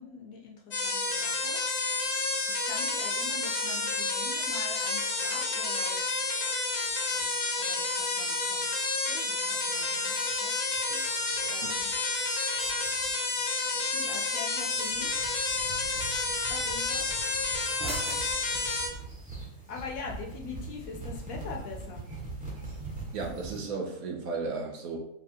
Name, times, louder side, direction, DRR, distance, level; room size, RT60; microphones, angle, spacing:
voice 1, 0.0-1.6 2.5-6.0 7.0-7.3 7.6-8.6 9.0-10.5 10.8-11.0 11.5-11.9 13.7-15.3 15.6-17.0 18.3-18.9 19.7-22.0, left 4 dB, 70° left, 0 dB, 1.1 m, -44 dB
sound 1, 0.7-18.9, left 3 dB, 50° left, 0.7 m, -30 dB
sound 2, 6.6-7.4 7.8-8.2 8.5-8.9 9.4-9.5 9.7-10.4 10.7-13.3 13.5-14.0 14.6-23.6, right 3 dB, 5° right, 1.0 m, -43 dB
sound 3, 11.4-19.4, right 3 dB, 55° right, 0.9 m, -49 dB
voice 2, 23.1-25.0, right 4 dB, 75° right, 1 dB, 1.2 m, -34 dB
4.3 x 3.0 x 2.8 m, 0.76 s
omnidirectional pair, 1.5 m